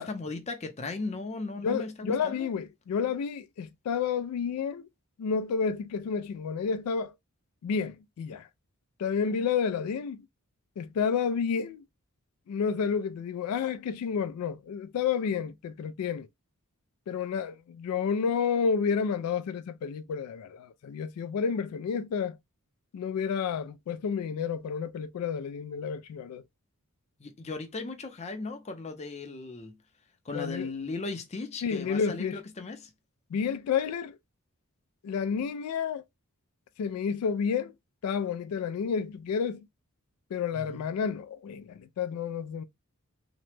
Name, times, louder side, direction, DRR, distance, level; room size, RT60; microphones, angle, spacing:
voice 1, 0.0-2.5 27.2-29.8 30.2-32.9 40.5-40.8, left 3 dB, 30° left, 0.5 m, -37 dB
voice 2, 1.6-4.8 5.2-7.1 7.6-8.5 9.0-10.3 10.8-11.8 12.5-16.3 17.1-22.4 22.9-26.4 30.3-30.7 31.6-32.4 33.3-34.2 35.0-36.0 36.8-37.7 38.0-39.7 40.3-42.6, left 6 dB, 85° left, 0.3 m, -30 dB
2.9 x 2.1 x 3.1 m
head